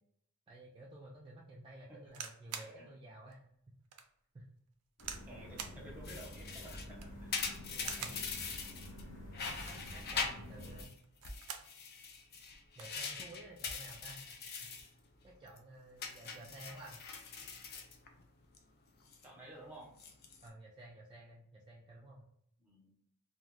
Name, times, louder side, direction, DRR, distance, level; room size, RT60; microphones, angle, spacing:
voice 1, 0.5-3.5 4.3-4.4 8.0-8.1 9.4-11.0 12.8-14.4 14.8-14.9 15.2-17.0 20.4-22.2, right 1 dB, 25° right, -4 dB, 0.4 m, -53 dB
sound 1, 2.1-2.8 3.3-3.4 3.9-4.1 5.0-5.3 5.6-5.8 6.8-7.2 7.8-8.3 9.5-9.9 11.0-11.7 12.1-12.2 12.5-13.0 13.8-14.1, right 7 dB, 85° right, 0.4 m, -45 dB
sound 2, 5.0-10.8, equal, 65° left, 0.8 m, -49 dB
voice 2, 5.3-7.4 7.7-8.2 13.2-13.4 19.2-19.9 22.6-22.9, right 1 dB, 10° right, -3 dB, 0.9 m, -53 dB
sound 3, 6.0-9.0 9.3-10.9 11.2-14.9 15.2-15.6 16.0-18.6 18.9-19.3 19.9-20.5, left 5 dB, 45° left, 0.4 m, -42 dB
2.4 x 2.3 x 3.1 m, 0.71 s
head